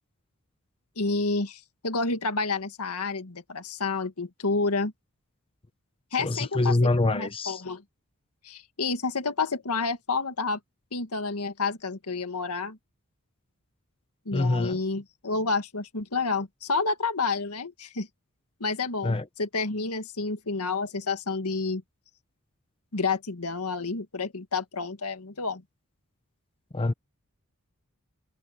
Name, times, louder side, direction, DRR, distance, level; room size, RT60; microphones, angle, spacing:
voice 1, 1.0-4.9 6.1-7.8 8.4-10.6 10.9-12.8 14.3-18.1 18.6-21.8 22.9-25.6, left 4 dB, 85° left, 1.8 m, -29 dB
voice 2, 6.2-7.6 14.3-14.8 19.0-19.2 26.7-26.9, left 2 dB, 25° left, 0.7 m, -25 dB
head